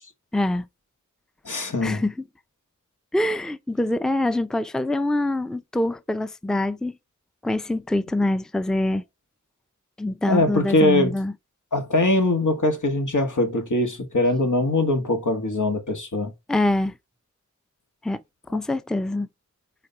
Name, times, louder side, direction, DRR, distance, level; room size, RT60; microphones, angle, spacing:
voice 1, 0.3-0.7 1.8-2.1 3.1-6.9 7.4-9.0 10.0-11.3 16.5-16.9 18.0-18.2 18.5-19.3, left 1 dB, ahead, 0.5 m, -24 dB
voice 2, 1.4-2.0 10.3-11.2 11.7-16.3, left 2 dB, 80° left, 1.8 m, -22 dB
5.0 x 3.9 x 5.6 m
wide cardioid pair, 50°, 30 cm